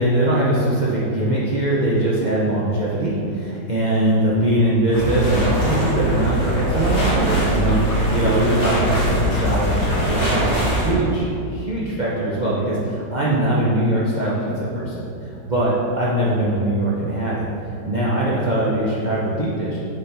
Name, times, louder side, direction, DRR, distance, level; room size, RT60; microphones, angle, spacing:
voice 1, 0.0-15.0 15.4-17.5 17.9-19.8, right 1 dB, 60° right, -7 dB, 0.4 m, -21 dB
sound 1, 4.9-10.9, right 1 dB, 40° left, 1.6 m, -21 dB
7.4 x 4.3 x 3.4 m, 2.6 s
omnidirectional pair, 1.9 m